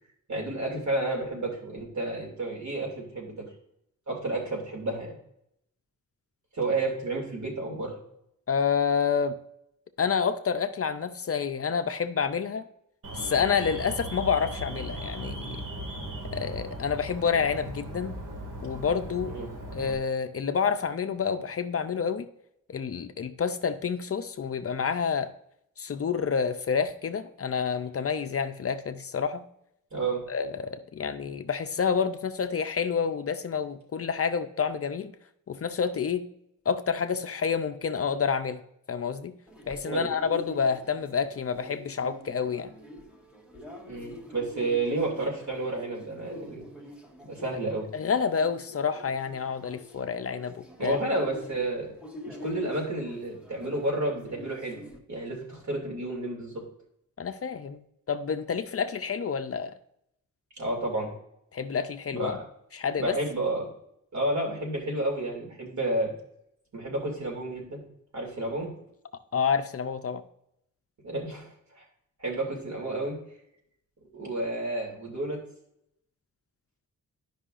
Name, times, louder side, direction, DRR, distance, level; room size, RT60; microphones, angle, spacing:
voice 1, 0.3-3.4 4.1-5.2 6.5-8.0 19.2-19.5 29.9-30.2 39.9-40.1 43.9-46.7 47.2-47.9 50.8-51.9 52.3-56.6 60.6-61.1 62.1-62.4 63.0-63.7 64.1-66.1 66.7-67.8 68.1-68.7 71.0-71.5 71.7-71.8 72.2-73.2 74.1-75.4, right 2 dB, 60° right, -1 dB, 2.7 m, -31 dB
voice 2, 8.5-9.4 10.0-12.7 13.1-15.6 16.3-18.2 18.6-19.3 19.7-22.3 22.7-25.3 25.8-29.4 30.3-35.1 35.5-36.3 36.7-38.6 38.9-39.3 39.7-42.7 47.9-51.0 57.2-57.8 58.1-59.7 61.5-62.4 62.7-63.2 69.3-70.2, left 6 dB, 45° left, 8 dB, 0.5 m, -28 dB
Alarm, 13.0-19.9, right 1 dB, 75° right, 2.1 m, -38 dB
sound 1, 39.5-55.0, left 1 dB, 5° right, 1.1 m, -46 dB
11.5 x 5.5 x 2.5 m, 0.76 s
wide cardioid pair, 130°, 33 cm